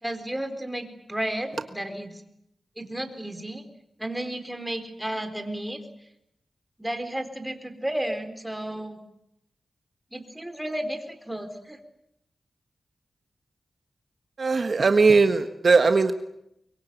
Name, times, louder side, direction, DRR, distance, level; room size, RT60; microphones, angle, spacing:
voice 1, 0.0-2.2 2.8-3.6 4.0-5.8 6.8-9.0 10.1-11.8, right 1 dB, 10° right, 8 dB, 4.1 m, -33 dB
voice 2, 14.4-16.1, right 4 dB, 55° right, 7 dB, 1.4 m, -19 dB
24.0 x 22.5 x 9.3 m, 0.81 s
wide cardioid pair, 75°, 0 cm